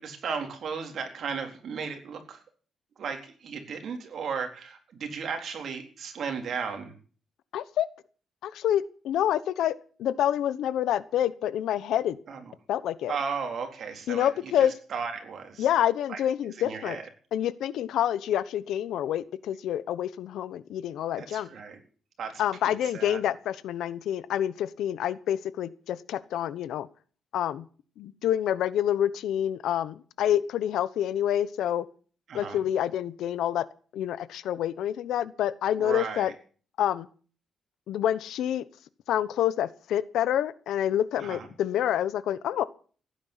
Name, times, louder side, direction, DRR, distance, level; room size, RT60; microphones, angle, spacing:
voice 1, 0.0-2.4 3.0-6.9 12.3-12.4 13.1-14.3 14.6-15.7 16.1-16.2 16.6-17.1 21.2-21.8 22.2-23.2 32.3-32.6 35.8-36.3 41.2-41.5, right 6 dB, 55° right, 5 dB, 3.9 m, -35 dB
voice 2, 7.5-7.9 8.4-12.2 12.7-13.1 14.1-14.7 15.6-17.0 17.3-21.5 22.4-26.9 27.3-27.6 28.0-31.9 32.3-33.7 33.9-36.3 36.8-37.1 37.9-38.7 39.1-42.6, left 11 dB, 85° left, 16 dB, 1.0 m, -27 dB
16.0 x 9.9 x 8.1 m, 0.42 s
cardioid pair, 125°, 0 cm